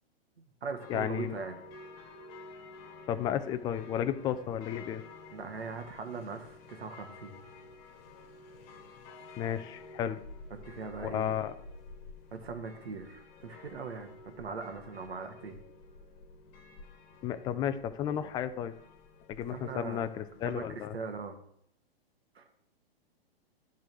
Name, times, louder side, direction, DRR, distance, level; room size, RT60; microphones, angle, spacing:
voice 1, 0.4-1.6 5.3-7.4 10.6-11.4 12.3-15.6 19.5-20.1 20.4-21.4 22.3-22.5, right 4 dB, 85° right, 6 dB, 1.6 m, -40 dB
sound 1, 0.8-20.5, left 3 dB, 50° left, 1.8 m, -51 dB
voice 2, 0.9-1.4 3.1-5.0 9.4-10.2 11.0-11.5 17.2-18.7 19.3-20.9, left 10 dB, 15° left, 11 dB, 0.4 m, -33 dB
11.0 x 4.0 x 7.5 m, 0.72 s
hypercardioid pair, 130°, 30 cm